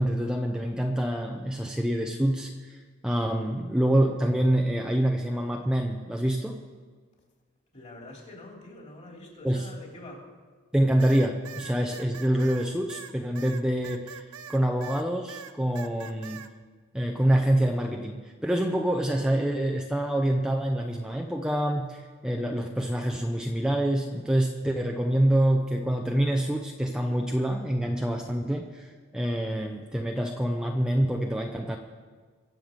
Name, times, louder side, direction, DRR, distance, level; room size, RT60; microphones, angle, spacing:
voice 1, 0.0-6.6 9.4-9.7 10.7-16.5 16.9-31.8, right 1 dB, 5° right, 2 dB, 0.7 m, -26 dB
voice 2, 7.7-10.2, left 1 dB, 35° left, -1 dB, 3.3 m, -45 dB
sound 1, 11.0-15.0 15.3-16.5, right 8 dB, 85° right, 0.7 m, -43 dB
23.5 x 7.9 x 5.3 m, 1.5 s
head